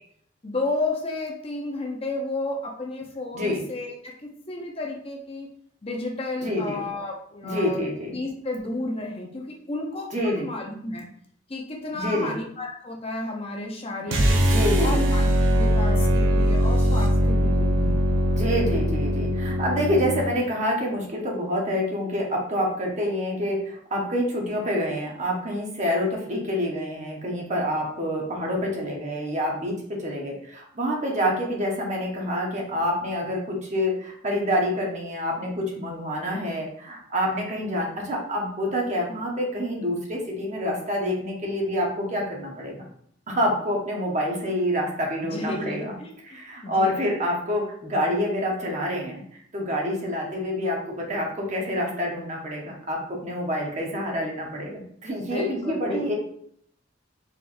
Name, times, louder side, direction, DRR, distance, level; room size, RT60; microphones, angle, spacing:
voice 1, 0.4-5.5 5.8-7.8 8.1-11.1 11.5-14.4 14.8-18.0 45.2-47.1 55.2-56.1, left 2 dB, 30° left, 0 dB, 0.6 m, -32 dB
voice 2, 6.4-6.8 7.4-8.2 10.1-10.5 11.9-12.3 14.4-15.0 18.4-42.9 43.3-45.9 46.2-56.1, equal, 35° right, -1 dB, 1.0 m, -27 dB
sound 1, 14.1-20.3, equal, 85° right, 0.7 m, -21 dB
4.9 x 3.5 x 2.6 m, 0.65 s
head